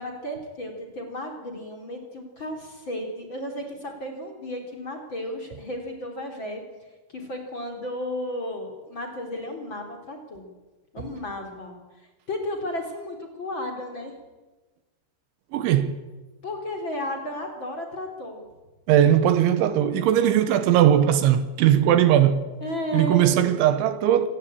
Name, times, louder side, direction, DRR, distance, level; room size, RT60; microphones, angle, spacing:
voice 1, 0.0-6.6 7.1-10.5 10.9-11.8 12.3-14.1 16.4-18.4 22.6-23.3, left 1 dB, 30° left, 3.2 m, -33 dB
voice 2, 15.5-16.0 18.9-22.5 22.9-24.3, right 10 dB, 80° right, 3.4 m, -19 dB
25.5 x 18.5 x 8.7 m
omnidirectional pair, 5.6 m